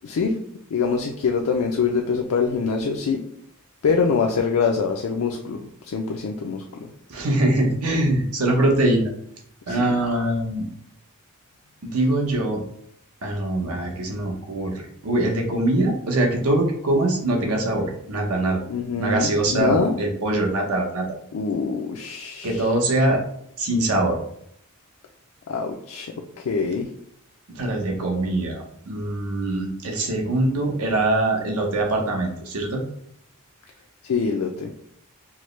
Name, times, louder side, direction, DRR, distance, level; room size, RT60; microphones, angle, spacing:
voice 1, 0.0-0.4 0.7-3.2 3.8-6.6 9.7-10.0 18.7-20.0 21.3-22.7 25.5-26.9 34.0-34.7, left 5 dB, 75° left, 1 dB, 0.4 m, -24 dB
voice 2, 7.1-9.1 9.7-10.6 11.8-12.6 13.2-18.6 19.0-21.0 22.4-23.2 23.6-24.2 27.6-32.8, right 1 dB, 85° right, 1 dB, 0.9 m, -23 dB
4.5 x 2.1 x 3.1 m, 0.70 s
head